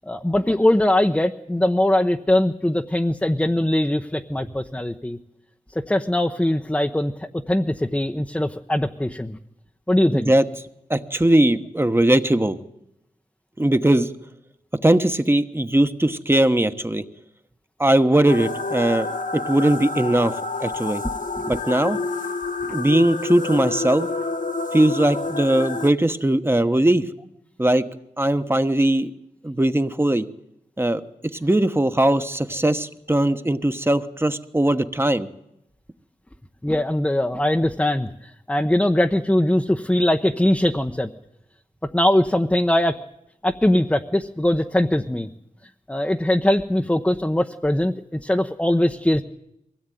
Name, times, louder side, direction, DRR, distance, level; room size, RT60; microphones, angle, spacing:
voice 1, 0.1-5.2 5.7-9.4 9.9-10.3 21.0-21.1 21.4-21.5 22.7-22.8 36.6-41.1 41.9-43.0 43.4-45.3 45.9-49.2, left 1 dB, 10° left, 4 dB, 0.9 m, -21 dB
voice 2, 10.1-10.4 10.9-12.6 13.6-14.1 14.8-17.0 17.8-20.3 20.6-21.0 21.5-22.0 22.7-24.1 24.7-27.0 27.6-27.8 28.2-29.1 29.4-30.3 30.8-31.0 31.4-35.3, right 1 dB, 15° right, 10 dB, 1.2 m, -20 dB
sound 1, 18.3-25.9, left 3 dB, 65° left, 1.1 m, -28 dB
23.0 x 17.0 x 9.3 m, 0.82 s
wide cardioid pair, 85°, 14 cm